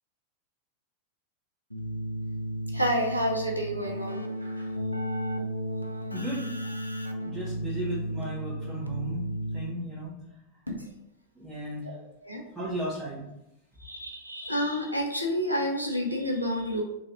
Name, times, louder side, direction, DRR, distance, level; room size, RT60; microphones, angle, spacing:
Keyboard (musical), 1.7-10.1, equal, 90° left, 0.3 m, -34 dB
voice 1, 2.7-4.7 10.7-10.8 11.8-12.4 13.8-16.8, equal, 90° right, 1 dB, 0.6 m, -29 dB
voice 2, 6.1-6.5 7.2-9.2 9.5-10.1 11.3-11.9 12.5-13.2, right 1 dB, 10° right, -11 dB, 1.3 m, -35 dB
3.0 x 2.8 x 4.0 m, 0.86 s
figure-of-eight pair, 90°, 0 cm